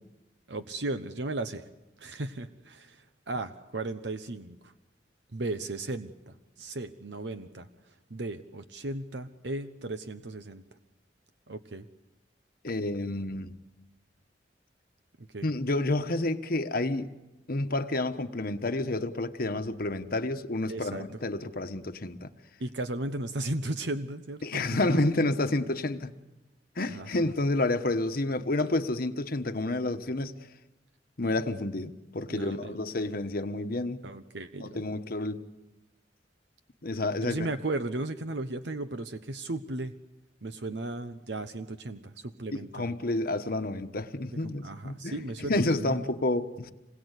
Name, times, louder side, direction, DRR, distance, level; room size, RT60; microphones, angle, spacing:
voice 1, 0.5-1.6 2.0-4.7 5.3-10.6 11.5-11.9 15.2-15.5 20.7-21.1 22.6-25.0 26.9-27.1 32.3-32.8 34.0-34.8 37.2-39.9 40.4-42.9 44.4-46.0, right 2 dB, 70° right, 1.0 m, -36 dB
voice 2, 12.6-13.5 15.4-17.1 17.5-22.3 24.4-26.1 26.8-30.3 31.2-34.0 34.6-35.5 36.8-37.4 42.5-45.2 45.5-46.7, left 2 dB, 55° left, 1.2 m, -29 dB
27.5 x 21.5 x 8.2 m
head